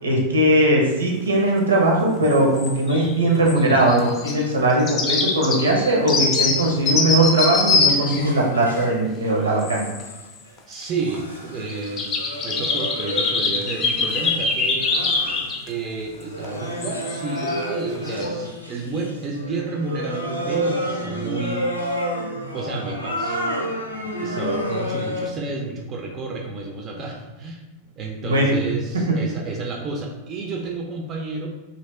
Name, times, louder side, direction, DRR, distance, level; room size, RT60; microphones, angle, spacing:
voice 1, 0.0-9.9 28.2-28.6, right 1 dB, 75° right, -1 dB, 0.8 m, -19 dB
sound 1, 2.2-3.2 3.5-4.3 4.7-8.9 9.6-10.2 10.6-10.7 11.1-11.2 11.7-15.7 16.4-16.5 16.8-17.6 17.9-18.3, left 4 dB, 30° left, 0.5 m, -24 dB
sound 2, 7.0-8.9 9.2-10.2 10.8-15.7 16.2-25.3, equal, 85° left, 0.5 m, -30 dB
voice 2, 10.7-15.0 15.7-21.7 22.5-23.4 24.2-27.6 28.0-31.5, right 3 dB, 30° right, 0 dB, 0.5 m, -31 dB
2.9 x 2.8 x 3.1 m, 1.1 s
figure-of-eight pair, 90°, 0 cm